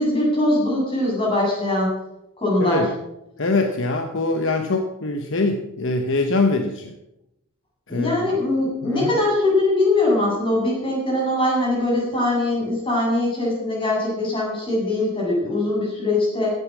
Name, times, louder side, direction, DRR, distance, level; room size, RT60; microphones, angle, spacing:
voice 1, 0.0-2.0 2.4-2.8 7.9-16.5, left 2 dB, 25° left, -4 dB, 7.4 m, -21 dB
voice 2, 2.6-2.9 3.4-7.0 7.9-8.3 8.8-9.1, left 2 dB, 55° left, 5 dB, 1.1 m, -23 dB
16.5 x 9.5 x 6.3 m, 0.89 s
head